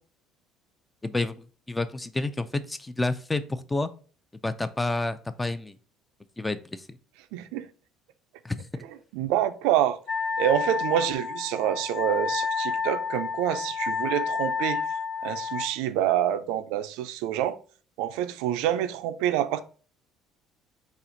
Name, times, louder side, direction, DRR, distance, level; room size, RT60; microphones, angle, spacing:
voice 1, 1.0-3.9 4.4-5.8 6.4-7.0 8.4-8.8, left 2 dB, 10° left, 0.3 m, -30 dB
voice 2, 7.3-7.7 9.1-10.0 10.4-14.8 15.2-17.6 18.0-19.6, right 11 dB, 90° right, 0.4 m, -27 dB
Wind instrument woodwind instrument, 10.1-15.7, left 5 dB, 30° left, 0.7 m, -30 dB
4.2 x 2.4 x 3.9 m
cardioid pair, 130°, 0 cm